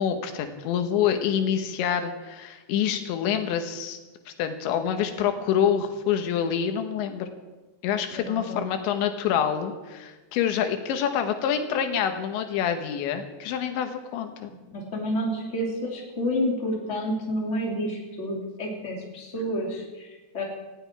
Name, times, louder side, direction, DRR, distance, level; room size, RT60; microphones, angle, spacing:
voice 1, 0.0-4.0 4.3-7.3 7.8-14.5, left 8 dB, 80° left, 7 dB, 3.4 m, -26 dB
voice 2, 8.2-8.6 14.4-20.1 20.3-20.4, equal, 20° left, -2 dB, 2.6 m, -29 dB
18.5 x 15.0 x 4.6 m, 1.2 s
omnidirectional pair, 5.2 m